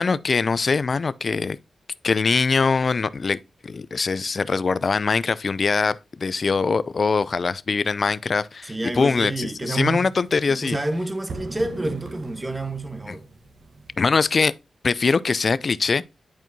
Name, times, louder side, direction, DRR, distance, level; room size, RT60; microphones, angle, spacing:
voice 1, 0.0-1.6 2.0-10.8 13.1-13.2 14.0-14.5 14.8-16.0, left 4 dB, 50° left, 0.3 m, -22 dB
voice 2, 8.7-10.1 10.5-13.2, right 2 dB, 20° right, 1.0 m, -28 dB
sound 1, 8.8-13.9, right 3 dB, 70° right, 1.2 m, -41 dB
10.5 x 4.5 x 2.7 m
cardioid pair, 80°, 0 cm